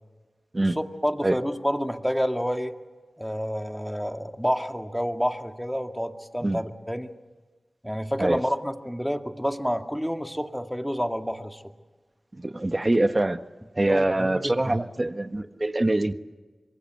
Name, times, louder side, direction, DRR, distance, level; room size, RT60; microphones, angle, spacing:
voice 1, 0.6-2.7 3.2-7.1 7.8-11.6 13.9-14.8, equal, ahead, 5 dB, 2.1 m, -29 dB
voice 2, 12.4-13.4 13.8-16.1, right 2 dB, 35° right, 9 dB, 1.4 m, -24 dB
26.0 x 22.5 x 7.8 m, 1.3 s
cardioid pair, 50°, 0 cm